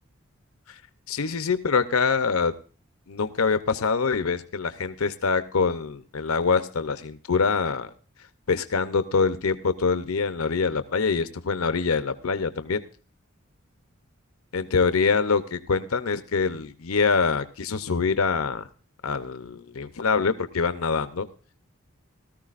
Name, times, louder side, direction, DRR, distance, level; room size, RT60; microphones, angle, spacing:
voice 1, 1.1-2.5 3.1-7.9 8.5-12.8 14.5-18.6 19.0-21.3, left 5 dB, 85° left, 11 dB, 0.8 m, -25 dB
18.0 x 13.5 x 2.5 m, 0.38 s
head